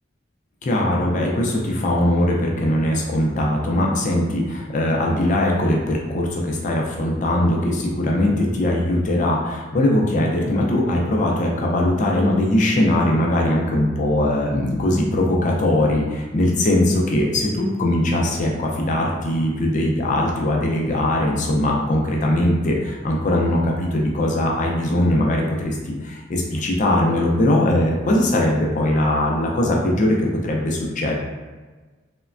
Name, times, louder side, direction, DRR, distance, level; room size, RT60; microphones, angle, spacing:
voice 1, 0.6-31.2, left 1 dB, 40° left, -1 dB, 0.4 m, -20 dB
3.1 x 2.1 x 2.4 m, 1.3 s
head